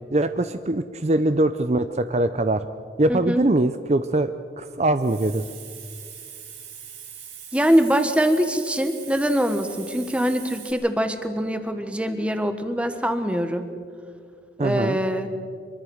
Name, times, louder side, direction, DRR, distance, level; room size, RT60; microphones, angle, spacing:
voice 1, 0.1-2.6 3.0-4.3 4.6-5.4 14.6-15.0, right 2 dB, 40° right, 11 dB, 0.6 m, -22 dB
voice 2, 3.1-3.4 7.5-13.6 14.6-15.3, equal, 5° right, 9 dB, 1.4 m, -23 dB
Hiss, 4.9-10.7, right 8 dB, 85° right, 7.4 m, -41 dB
25.0 x 23.0 x 6.4 m, 2.3 s
head